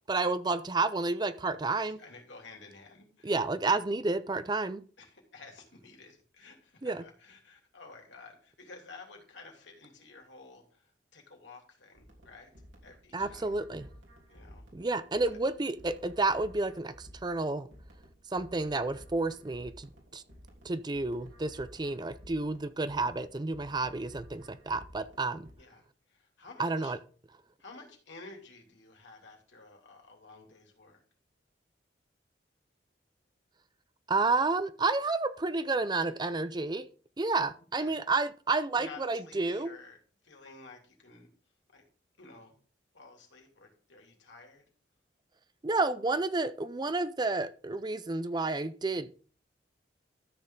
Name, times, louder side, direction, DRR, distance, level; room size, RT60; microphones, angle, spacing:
voice 1, 0.1-2.0 3.2-4.8 6.8-7.0 13.1-13.9 14.7-17.7 18.3-20.2 20.6-25.5 26.6-27.0 34.1-36.9 37.2-39.7 45.6-49.1, right 3 dB, 25° right, 0.5 m, -30 dB
voice 2, 1.9-3.3 5.0-12.5 12.8-13.5 14.3-14.7 15.2-15.4 25.6-26.9 27.6-31.0 37.8-38.0 38.7-40.0 40.2-41.3 41.7-41.8 42.2-42.5 42.9-44.7, left 3 dB, 80° left, 3.0 m, -52 dB
sound 1, 11.9-25.5, equal, 85° right, 3.4 m, -54 dB
13.0 x 6.8 x 3.8 m
head